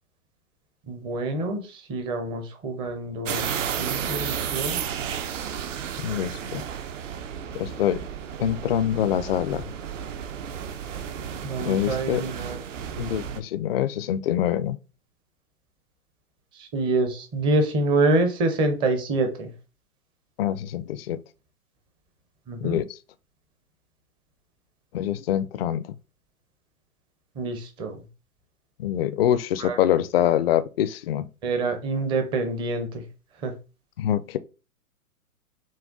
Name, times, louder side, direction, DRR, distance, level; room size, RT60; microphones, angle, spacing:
voice 1, 0.9-4.8 11.4-12.6 16.5-19.5 22.5-22.8 27.4-28.0 29.6-29.8 31.4-33.1 33.4-33.5, right 2 dB, 10° right, 0.5 m, -26 dB
sound 1, 3.3-13.4, right 8 dB, 60° right, 0.8 m, -32 dB
voice 2, 6.0-6.6 7.5-8.0 8.4-9.6 11.6-12.2 13.0-14.8 20.4-21.2 22.6-22.9 24.9-25.9 28.8-31.3 34.0-34.4, left 11 dB, 45° left, 0.5 m, -25 dB
6.1 x 2.2 x 3.7 m
hypercardioid pair, 120°, 43 cm